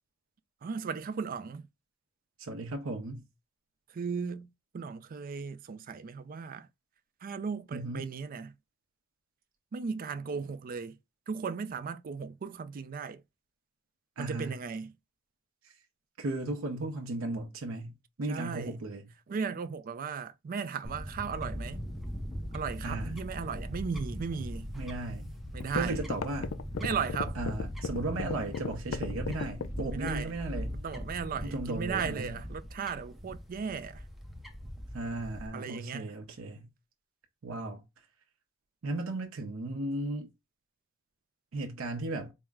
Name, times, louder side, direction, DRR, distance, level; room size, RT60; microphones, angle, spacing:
voice 1, 0.6-1.7 3.9-6.7 7.2-8.6 9.7-11.0 11.3-13.2 14.2-15.0 18.3-18.8 19.3-21.8 22.5-24.7 25.5-26.0 26.8-27.4 29.9-30.4 30.7-34.0 35.5-36.1, right 6 dB, 45° right, 0.4 m, -36 dB
voice 2, 2.4-3.3 7.7-8.0 14.2-14.6 15.6-15.7 16.2-19.1 22.8-23.1 24.7-25.3 25.8-26.5 27.4-30.8 31.4-32.3 34.9-36.7 37.4-37.8 38.8-40.3 41.5-42.3, right 2 dB, 85° right, 0.7 m, -36 dB
Fowl / Bird, 20.8-35.5, equal, ahead, 0.6 m, -40 dB
sound 1, 25.1-25.2 25.6-30.3, left 5 dB, 70° left, 0.4 m, -35 dB
4.4 x 2.1 x 3.5 m
head